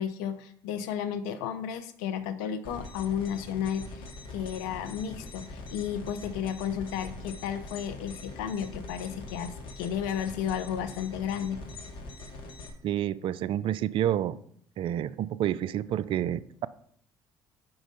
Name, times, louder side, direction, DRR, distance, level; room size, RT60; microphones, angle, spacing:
voice 1, 0.0-11.6, left 8 dB, 75° left, 10 dB, 0.6 m, -33 dB
sound 1, 2.6-12.7, left 2 dB, 55° left, 1.4 m, -43 dB
voice 2, 12.8-14.4 14.8-16.7, right 11 dB, 55° right, 16 dB, 0.4 m, -29 dB
5.0 x 4.9 x 5.3 m, 0.64 s
hypercardioid pair, 60°, 11 cm